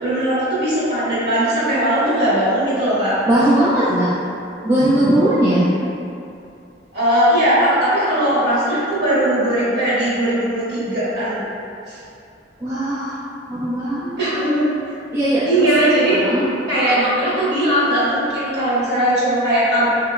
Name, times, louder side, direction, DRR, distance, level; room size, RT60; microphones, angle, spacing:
voice 1, 0.0-3.2 6.9-11.4 11.9-12.0 14.2-14.7 15.5-16.2 16.7-19.9, right 1 dB, 60° right, -10 dB, 1.3 m, -19 dB
voice 2, 3.3-4.1 4.6-5.7 12.6-13.2 13.5-14.4 15.1-15.7 16.1-16.4, right 1 dB, 15° right, -10 dB, 0.4 m, -18 dB
3.8 x 2.8 x 2.3 m, 2.6 s
head